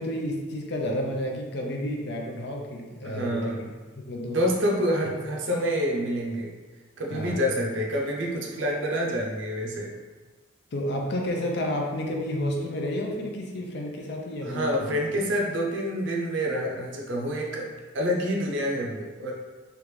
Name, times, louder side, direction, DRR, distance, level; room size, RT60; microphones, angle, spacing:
voice 1, 0.0-3.6 3.9-4.4 7.1-7.4 10.7-15.0, left 1 dB, 55° left, 1 dB, 0.5 m, -31 dB
voice 2, 3.0-3.7 4.2-6.5 7.0-9.9 14.4-17.7 17.9-19.3, equal, 65° right, -1 dB, 0.6 m, -27 dB
3.3 x 2.5 x 3.1 m, 1.3 s
head